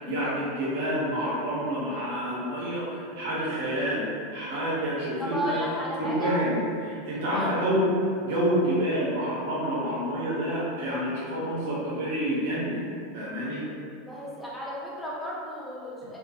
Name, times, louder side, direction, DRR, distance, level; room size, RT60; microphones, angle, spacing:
voice 1, 0.0-4.1 4.3-5.6 6.0-12.8 13.1-13.6, equal, 65° right, -7 dB, 0.8 m, -28 dB
voice 2, 5.2-6.4 7.2-7.5 14.0-16.2, equal, 10° left, -6 dB, 0.6 m, -33 dB
2.5 x 2.2 x 2.4 m, 2.3 s
hypercardioid pair, 90°, 0 cm